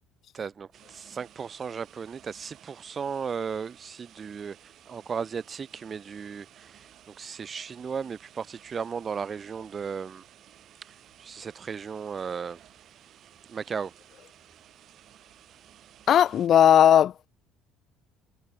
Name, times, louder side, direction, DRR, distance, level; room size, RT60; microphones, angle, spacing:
voice 1, 0.3-6.9 7.2-10.2 11.2-12.6 13.5-13.9, right 6 dB, 30° right, 2.4 m, -35 dB
sound 1, 0.7-16.5, right 11 dB, 50° right, 4.8 m, -55 dB
voice 2, 16.1-17.1, left 10 dB, 45° left, 0.4 m, -17 dB
cardioid pair, 120°, 0 cm